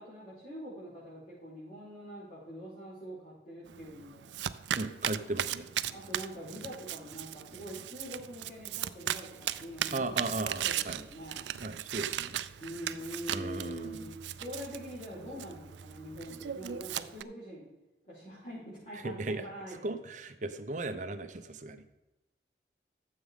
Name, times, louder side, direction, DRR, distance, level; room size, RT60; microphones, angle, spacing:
voice 1, 0.0-4.3 5.9-11.5 12.6-14.1 14.3-17.7 18.0-20.0, equal, 40° left, -11 dB, 4.2 m, -44 dB
Domestic sounds home sounds, 3.7-17.2, right 11 dB, 90° right, 0.4 m, -38 dB
voice 2, 4.8-5.7 9.9-11.0 11.6-12.4 13.3-14.1 19.0-19.4 19.8-21.8, right 2 dB, 45° right, 9 dB, 0.7 m, -36 dB
13.5 x 7.3 x 3.7 m, 1.0 s
head